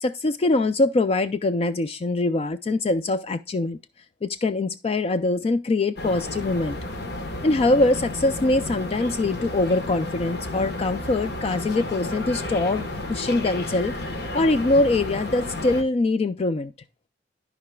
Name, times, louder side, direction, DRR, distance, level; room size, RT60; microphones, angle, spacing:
voice 1, 0.0-3.8 4.2-6.8 7.4-13.9 14.3-16.7, left 2 dB, 35° left, 0.3 m, -23 dB
sound 1, 6.0-15.8, left 2 dB, 65° left, 1.2 m, -32 dB
14.0 x 5.0 x 2.2 m
head